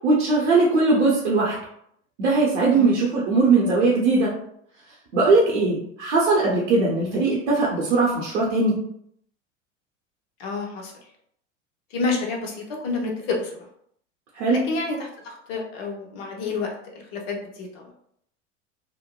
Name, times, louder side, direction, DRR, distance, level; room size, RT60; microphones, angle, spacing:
voice 1, 0.0-1.6 2.2-4.3 5.1-8.7 14.3-14.6, right 3 dB, 65° right, -4 dB, 0.7 m, -20 dB
voice 2, 10.4-10.9 11.9-13.5 14.5-17.9, left 3 dB, 50° left, 0 dB, 0.8 m, -29 dB
2.9 x 2.0 x 2.2 m, 0.70 s
figure-of-eight pair, 80°, 38 cm